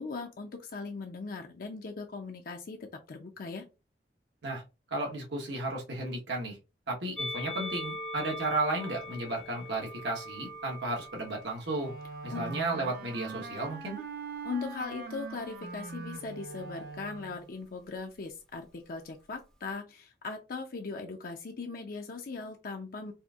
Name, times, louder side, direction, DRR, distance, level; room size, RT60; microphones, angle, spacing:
voice 1, 0.0-3.7 12.3-12.5 14.4-23.1, left 4 dB, 55° left, 3 dB, 0.5 m, -39 dB
voice 2, 4.9-6.6 6.9-11.9 12.2-14.0, right 2 dB, 85° right, -1 dB, 1.2 m, -33 dB
Musical instrument, 7.2-13.6 14.4-15.4, left 1 dB, 5° left, 0.5 m, -42 dB
Wind instrument woodwind instrument, 11.7-17.5, right 4 dB, 55° right, 0.5 m, -42 dB
4.2 x 2.5 x 2.4 m, 0.29 s
head